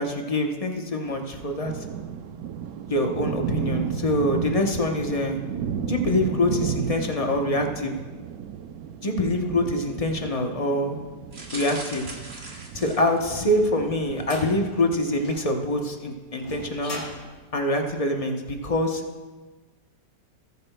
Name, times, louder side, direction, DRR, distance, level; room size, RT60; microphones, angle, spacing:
voice 1, 0.0-1.8 2.9-5.4 5.9-8.0 9.0-11.0 11.5-12.1 12.7-17.0 17.5-19.0, left 1 dB, 40° left, 3 dB, 0.5 m, -25 dB
sound 1, 1.0-15.2, right 8 dB, 70° right, 1.0 m, -34 dB
sound 2, 11.3-13.6 14.1-14.4 14.7-14.8, right 2 dB, 45° right, 1.9 m, -40 dB
sound 3, 13.8-18.6, left 2 dB, 65° left, 3.3 m, -41 dB
20.0 x 9.4 x 2.2 m, 1.3 s
omnidirectional pair, 1.9 m